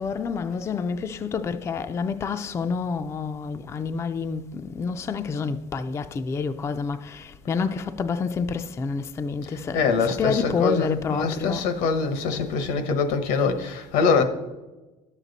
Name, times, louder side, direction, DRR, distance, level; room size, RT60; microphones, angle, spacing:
voice 1, 0.0-11.7, left 5 dB, 20° left, 0.3 m, -28 dB
voice 2, 9.4-14.2, left 4 dB, 85° left, 1.1 m, -24 dB
11.0 x 7.4 x 4.0 m
cardioid pair, 150°, 15 cm